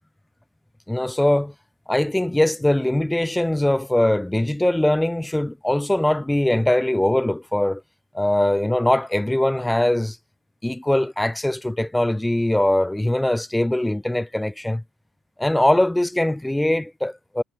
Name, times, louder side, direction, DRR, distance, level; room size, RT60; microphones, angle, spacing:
voice 1, 0.9-1.5 1.9-7.8 8.1-10.2 10.6-14.8 15.4-17.4, left 1 dB, 5° left, 5.5 m, -21 dB
figure-of-eight pair, 50°, 0 cm